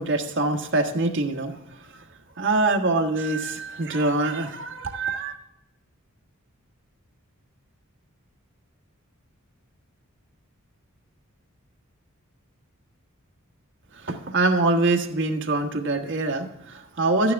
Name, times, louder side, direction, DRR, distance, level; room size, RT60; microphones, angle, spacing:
voice 1, 0.0-2.0 2.4-5.4 13.9-17.3, right 2 dB, 55° right, 2 dB, 1.4 m, -24 dB
11.5 x 9.6 x 3.5 m, 0.88 s
head